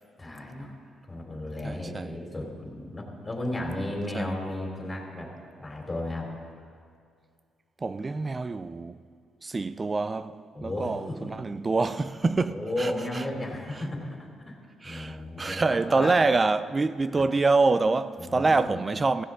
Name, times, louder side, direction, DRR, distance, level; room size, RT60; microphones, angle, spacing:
voice 1, 0.2-0.7 1.1-5.3 5.6-6.3 10.5-11.3 12.5-14.6 14.8-16.2 17.1-17.3 18.2-18.8, left 1 dB, 20° left, 3.4 m, -34 dB
voice 2, 1.6-2.2 4.1-4.4 7.8-9.0 9.4-13.2 14.8-19.2, right 3 dB, 25° right, 0.4 m, -26 dB
15.5 x 15.5 x 3.7 m
cardioid pair, 90°, 0 cm